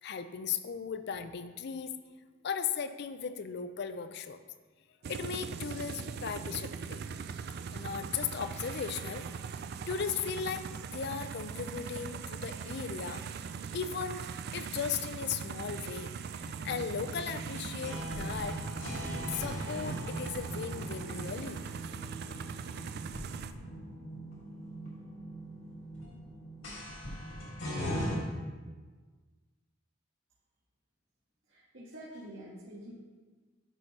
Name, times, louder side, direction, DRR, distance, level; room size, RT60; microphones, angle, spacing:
voice 1, 0.0-1.9 2.4-4.4 5.1-7.0 7.7-9.3 9.9-13.2 13.7-18.6 19.3-21.6, left 6 dB, 55° left, 11 dB, 0.4 m, -37 dB
sound 1, 5.0-23.5, right 6 dB, 50° right, 0.3 m, -41 dB
sound 2, 16.4-28.2, equal, 70° left, 2.1 m, -40 dB
voice 2, 31.5-32.9, right 1 dB, 75° right, -10 dB, 1.8 m, -47 dB
11.5 x 5.3 x 2.8 m, 1.4 s
head